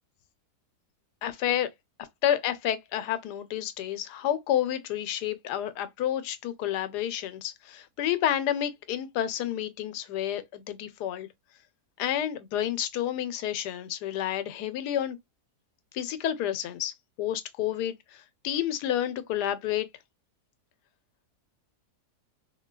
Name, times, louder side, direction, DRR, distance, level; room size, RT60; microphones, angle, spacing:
voice 1, 1.2-1.7 2.2-11.3 12.0-15.2 15.9-19.9, left 11 dB, 90° left, 1.2 m, -30 dB
3.6 x 2.2 x 2.3 m
omnidirectional pair, 1.7 m